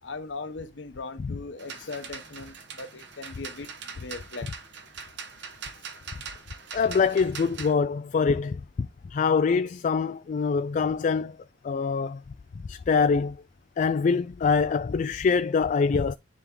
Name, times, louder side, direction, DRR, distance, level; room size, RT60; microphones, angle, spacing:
voice 1, 0.0-4.5, left 3 dB, 65° left, 0.9 m, -39 dB
partition grid in a catholic church, 1.6-7.7, right 6 dB, 65° right, 1.2 m, -42 dB
voice 2, 6.7-11.4 11.6-12.2 12.6-13.4 13.8-16.1, left 5 dB, 40° left, 0.3 m, -24 dB
9.6 x 3.6 x 3.7 m
head